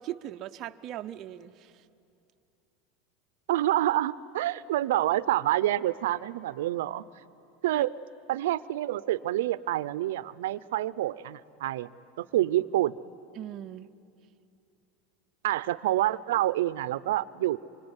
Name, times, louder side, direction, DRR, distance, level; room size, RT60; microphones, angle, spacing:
voice 1, 0.0-1.8 7.7-7.8 13.4-13.9, right 12 dB, 30° right, 7 dB, 0.5 m, -39 dB
voice 2, 3.5-7.0 7.6-7.9 8.3-11.9 12.2-13.0 15.4-17.6, right 14 dB, 90° right, 17 dB, 0.6 m, -27 dB
25.5 x 24.0 x 9.7 m, 2.6 s
supercardioid pair, 180°, 0 cm